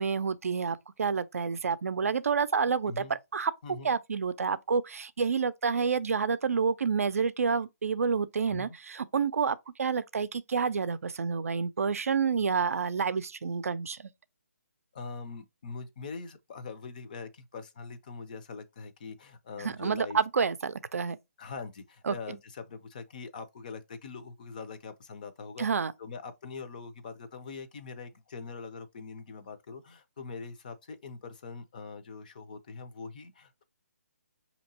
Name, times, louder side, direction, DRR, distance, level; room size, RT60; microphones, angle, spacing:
voice 1, 0.0-3.5 3.8-14.1 19.6-21.2 22.0-22.4 25.6-25.9, right 5 dB, 65° right, 0.4 m, -29 dB
voice 2, 2.9-3.2 3.6-4.0 8.5-8.8 14.9-20.2 21.4-25.7 26.0-33.6, left 4 dB, 30° left, 0.5 m, -43 dB
5.2 x 2.8 x 2.7 m
hypercardioid pair, 165°, 8 cm